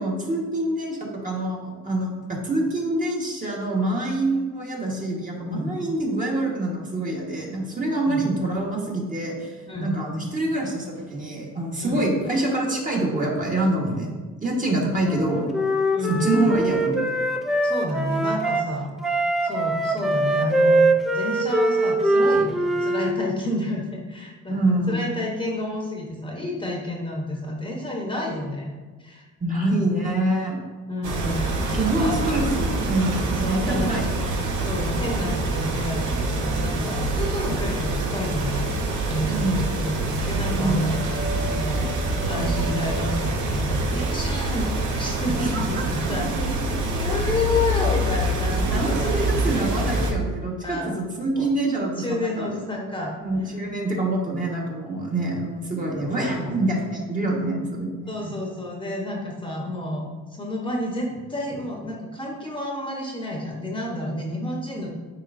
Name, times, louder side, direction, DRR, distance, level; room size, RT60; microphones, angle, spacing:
voice 1, 0.0-9.5 9.8-14.1 14.4-15.5 16.2-17.0 24.5-25.0 29.4-30.6 31.7-34.3 39.3-39.6 40.5-40.9 45.4-45.5 48.5-52.5 53.2-58.3, right 1 dB, 25° right, -3 dB, 1.7 m, -26 dB
Wind instrument woodwind instrument, 15.0-18.7 19.0-23.1, right 1 dB, ahead, 0.6 m, -22 dB
voice 2, 15.9-16.3 17.6-19.1 19.4-28.7 29.0-29.3 29.5-29.8 30.9-32.2 33.4-33.9 34.6-38.7 39.1-46.6 46.9-49.1 50.6-50.9 51.4-51.5 52.0-53.6 58.1-60.0 60.3-64.9, left 1 dB, 15° left, -2 dB, 1.2 m, -30 dB
sound 1, 31.0-50.1, right 2 dB, 80° right, 1.0 m, -25 dB
9.5 x 3.9 x 2.7 m, 1.4 s
cardioid pair, 90°, 30 cm